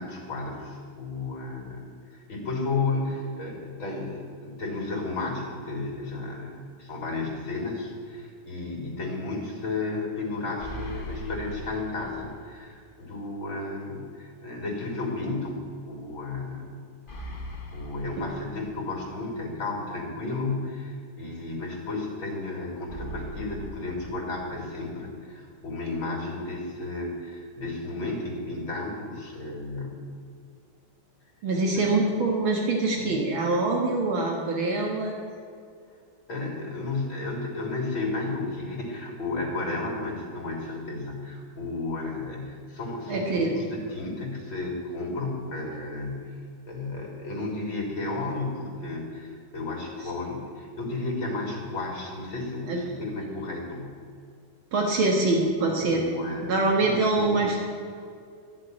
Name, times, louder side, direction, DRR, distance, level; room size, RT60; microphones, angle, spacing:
voice 1, 0.0-1.9 2.1-16.7 17.7-30.1 31.7-31.9 33.0-33.3 36.3-46.3 46.7-54.0 55.8-56.5 56.8-57.6, left 3 dB, 70° left, 0 dB, 4.2 m, -33 dB
sound 1, 10.6-12.6 12.9-13.0 17.1-19.1 22.9-24.9, equal, 30° left, 1.3 m, -40 dB
voice 2, 31.4-35.1 43.1-43.5 52.7-52.8 54.7-56.0 56.4-57.6, right 2 dB, 70° right, 0 dB, 2.5 m, -24 dB
13.5 x 7.5 x 9.5 m, 2.3 s
omnidirectional pair, 2.3 m